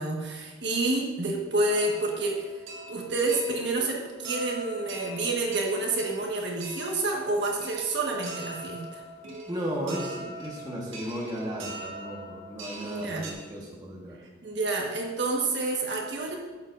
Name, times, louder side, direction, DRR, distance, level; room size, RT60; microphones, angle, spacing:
voice 1, 0.0-2.5 2.9-9.0 12.8-13.2 14.4-16.4, right 2 dB, 60° right, -1 dB, 1.4 m, -29 dB
sound 1, 1.7-13.3, right 2 dB, 85° right, 1.9 m, -42 dB
voice 2, 9.5-14.2, equal, 20° right, -4 dB, 1.3 m, -35 dB
14.0 x 7.2 x 2.6 m, 1.3 s
head